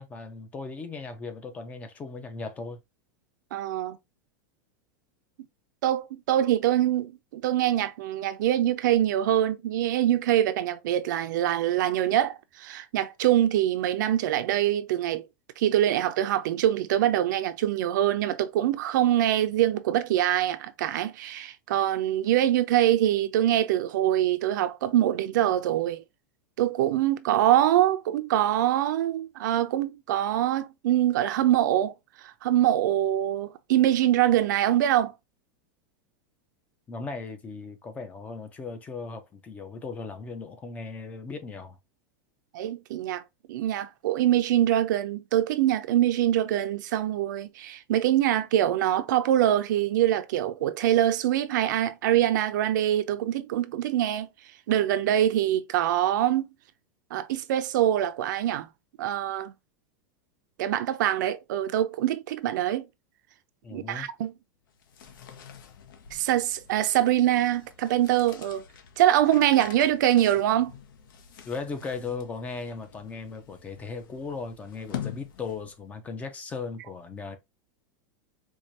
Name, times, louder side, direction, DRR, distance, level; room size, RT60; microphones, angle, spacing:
voice 1, 0.0-2.8 36.9-41.8 63.6-64.1 71.5-77.4, left 4 dB, 15° left, 0.4 m, -37 dB
voice 2, 3.5-4.0 5.8-15.3 15.6-26.0 26.6-31.9 32.2-35.1 42.5-43.2 43.5-54.3 54.7-56.5 57.1-58.7 59.0-59.5 60.6-62.9 63.7-64.3 66.1-68.6 69.0-70.7, right 12 dB, 65° right, 0.5 m, -24 dB
sound 1, 64.7-75.9, left 9 dB, 85° left, 0.9 m, -45 dB
4.6 x 2.4 x 2.7 m
supercardioid pair, 170°, 11 cm